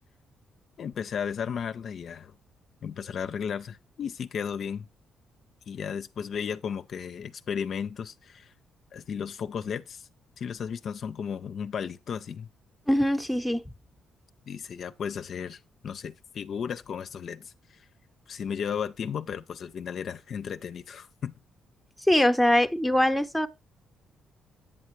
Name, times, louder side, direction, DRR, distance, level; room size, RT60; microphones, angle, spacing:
voice 1, 0.8-2.4 2.8-4.9 5.7-8.5 8.9-10.1 10.4-12.5 14.5-17.9 18.3-21.3, left 7 dB, 60° left, 0.4 m, -34 dB
voice 2, 12.9-13.6 22.1-23.5, left 1 dB, ahead, 0.7 m, -22 dB
8.7 x 6.4 x 3.1 m
cardioid pair, 90°, 0 cm